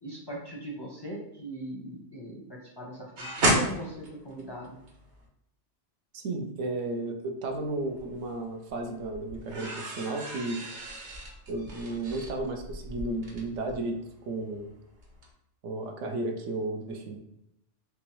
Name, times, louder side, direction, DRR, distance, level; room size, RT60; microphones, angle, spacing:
voice 1, 0.0-4.8, right 1 dB, 30° left, -3 dB, 0.4 m, -40 dB
sound 1, 3.2-5.3 7.5-8.3 8.7-14.7 15.0-15.3, right 1 dB, 50° right, 0.7 m, -33 dB
voice 2, 6.1-10.6 11.5-14.0 14.3-14.7 15.6-17.2, right 2 dB, 90° right, 4 dB, 1.0 m, -33 dB
3.4 x 3.0 x 3.0 m, 0.80 s
omnidirectional pair, 1.2 m